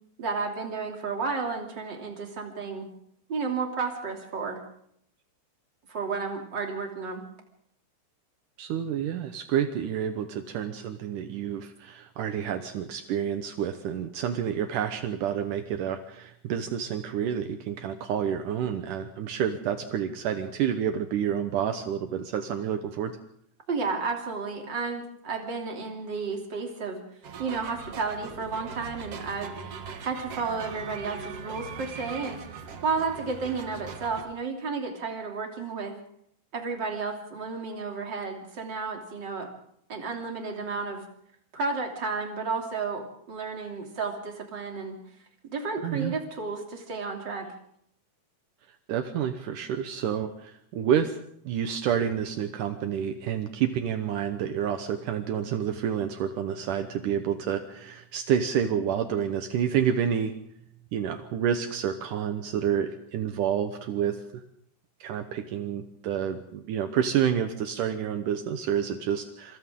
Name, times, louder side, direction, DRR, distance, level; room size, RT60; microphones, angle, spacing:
voice 1, 0.2-2.9 3.3-4.6 5.9-7.2 23.7-27.0 27.4-29.5 30.0-32.4 32.8-35.9 36.5-39.5 39.9-41.0 41.5-45.0 45.4-47.5, right 4 dB, 30° right, 2 dB, 2.9 m, -32 dB
voice 2, 8.6-23.2 45.8-46.1 48.9-51.2 51.5-60.3 60.9-64.4 65.0-69.6, right 9 dB, 80° right, 7 dB, 1.9 m, -29 dB
sound 1, 27.2-34.2, right 6 dB, 60° right, 1.6 m, -41 dB
26.5 x 26.5 x 3.8 m, 0.70 s
omnidirectional pair, 5.2 m